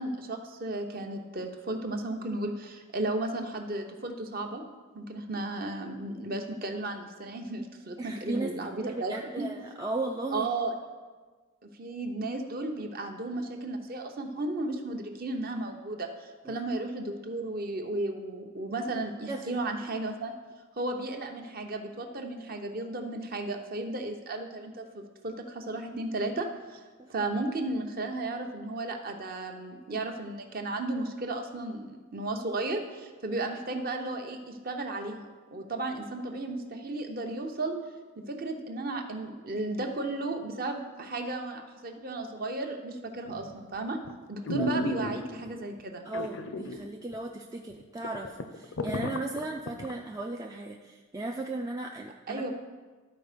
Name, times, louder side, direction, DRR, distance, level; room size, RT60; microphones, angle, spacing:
voice 1, 0.0-4.6 4.9-9.5 10.3-10.7 11.8-20.3 20.8-26.8 27.1-35.2 35.5-37.7 38.3-44.0 44.3-46.1 52.3-52.5, right 2 dB, 45° right, 4 dB, 0.8 m, -34 dB
voice 2, 8.0-10.5 16.5-16.6 19.3-19.6 27.0-27.1 44.6-44.7 46.0-52.5, right 2 dB, 15° right, 1 dB, 0.3 m, -36 dB
sound 1, 43.3-43.6 44.1-44.2 44.4-45.5 46.1-46.8 47.1-47.2 47.7-47.8 48.0-49.9 50.4-50.5, left 1 dB, 65° left, 0.6 m, -33 dB
12.0 x 4.5 x 5.0 m, 1.4 s
head